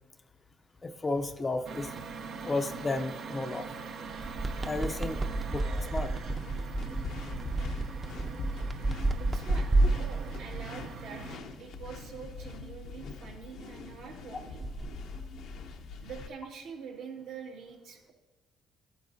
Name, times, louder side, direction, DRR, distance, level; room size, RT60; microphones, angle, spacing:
voice 1, 0.8-1.9 2.4-3.7 4.6-5.2 5.5-5.6 5.9-6.1, left 2 dB, 25° left, 9 dB, 0.6 m, -32 dB
sound 1, 1.6-11.4, right 5 dB, 65° right, 0.7 m, -42 dB
sound 2, 4.1-10.7 14.6-14.9, right 2 dB, 25° right, 0.7 m, -30 dB
sound 3, 6.1-16.3, left 4 dB, 75° left, 0.9 m, -43 dB
voice 2, 9.2-9.7 9.9-11.2 11.6-14.6 16.0-18.1, right 6 dB, 80° right, -2 dB, 2.1 m, -45 dB
14.5 x 8.4 x 2.7 m, 1.2 s
supercardioid pair, 80°, 0 cm